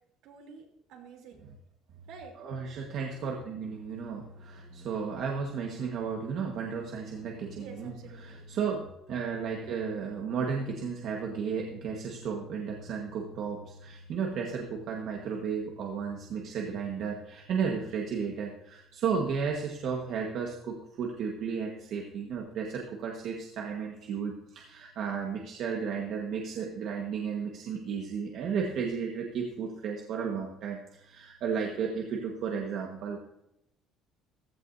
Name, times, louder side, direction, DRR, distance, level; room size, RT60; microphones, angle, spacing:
voice 1, 0.2-1.5 2.1-2.3 7.6-8.4, right 5 dB, 65° right, 1 dB, 3.2 m, -49 dB
voice 2, 2.4-7.9 8.2-33.2, right 6 dB, 45° right, 1 dB, 1.4 m, -34 dB
15.5 x 14.5 x 2.7 m, 0.83 s
cardioid pair, 180°, 0 cm